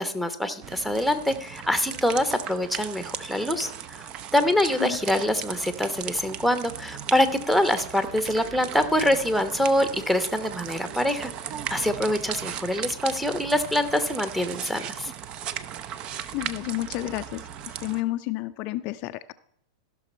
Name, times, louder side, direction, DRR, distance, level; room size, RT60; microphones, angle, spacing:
voice 1, 0.0-11.3 11.7-15.1, left 1 dB, ahead, 10 dB, 1.0 m, -25 dB
sound 1, 0.6-18.0, right 9 dB, 40° right, 0.6 m, -37 dB
voice 2, 16.3-19.3, left 17 dB, 45° left, 11 dB, 0.4 m, -31 dB
15.0 x 6.1 x 4.3 m, 0.73 s
hypercardioid pair, 100°, 2 cm